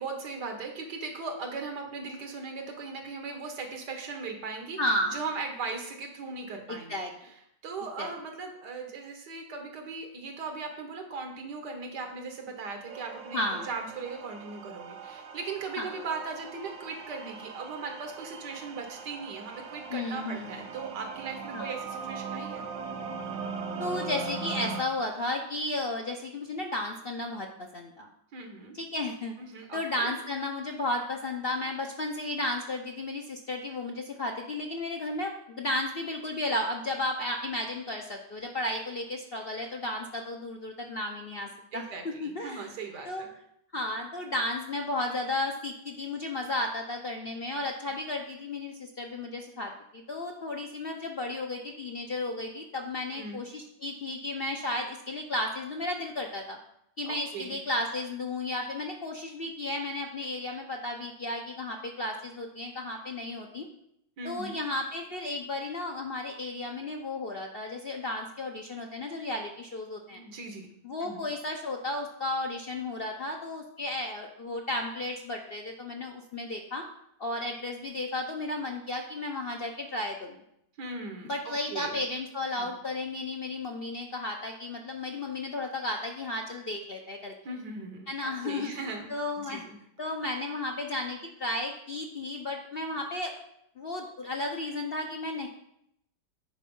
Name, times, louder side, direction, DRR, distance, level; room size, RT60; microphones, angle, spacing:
voice 1, 0.0-4.8 5.1-6.9 7.6-22.7 28.3-28.8 29.5-30.1 41.7-43.3 53.1-53.5 57.1-57.6 64.2-64.6 70.1-70.7 71.0-71.2 80.8-82.0 82.6-82.7 87.5-89.1 89.4-89.8, right 4 dB, 75° right, 4 dB, 1.9 m, -38 dB
voice 2, 4.8-5.2 6.7-7.1 8.0-8.1 13.3-13.7 15.8-15.9 19.9-20.7 21.5-21.7 23.8-28.1 28.7-29.3 29.7-42.7 43.0-43.2 43.7-56.6 57.0-63.7 64.2-70.2 70.8-76.8 77.2-80.4 81.2-87.3 88.1-88.7 89.1-89.6 90.0-93.3 93.8-95.5, left 2 dB, 50° left, 1 dB, 0.7 m, -33 dB
sound 1, 12.9-24.8, right 5 dB, 60° right, 0.8 m, -40 dB
9.2 x 4.6 x 5.4 m, 0.75 s
omnidirectional pair, 1.8 m